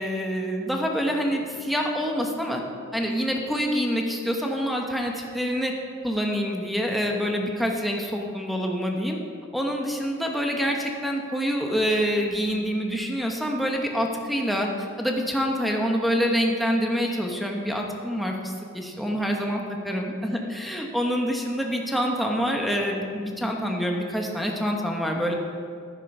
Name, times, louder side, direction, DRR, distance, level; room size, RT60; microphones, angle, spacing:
voice 1, 0.0-2.6 2.9-5.7 6.0-9.2 9.5-14.7 15.0-25.3, equal, ahead, 0 dB, 1.2 m, -26 dB
11.5 x 9.3 x 5.4 m, 2.2 s
head